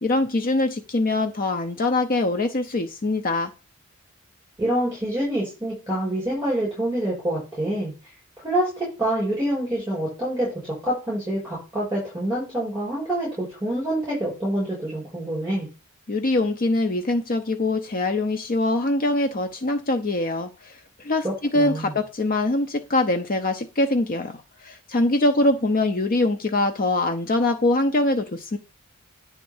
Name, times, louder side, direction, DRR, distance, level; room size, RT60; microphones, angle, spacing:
voice 1, 0.0-3.5 16.1-28.6, left 2 dB, 40° left, 6 dB, 0.6 m, -23 dB
voice 2, 4.6-7.9 8.4-15.7 21.2-21.9, right 1 dB, 15° right, -5 dB, 6.1 m, -26 dB
10.5 x 3.7 x 7.0 m, 0.32 s
head